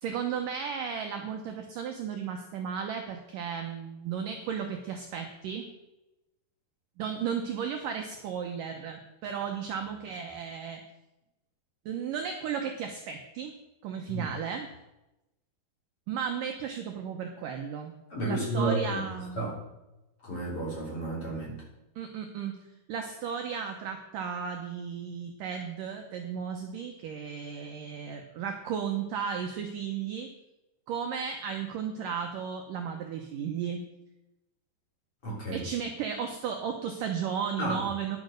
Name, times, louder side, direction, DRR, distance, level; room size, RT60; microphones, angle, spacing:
voice 1, 0.0-5.7 7.0-10.8 11.9-13.5 13.8-14.7 16.1-17.9 18.3-19.6 22.0-22.6 22.9-30.3 30.9-33.8 35.5-38.2, right 7 dB, 80° right, 3 dB, 1.9 m, -34 dB
voice 2, 18.1-19.0 19.3-19.5 20.2-21.6 35.2-35.6 37.6-37.8, right 2 dB, 35° left, -4 dB, 4.0 m, -31 dB
10.5 x 8.6 x 6.5 m, 0.96 s
omnidirectional pair, 5.0 m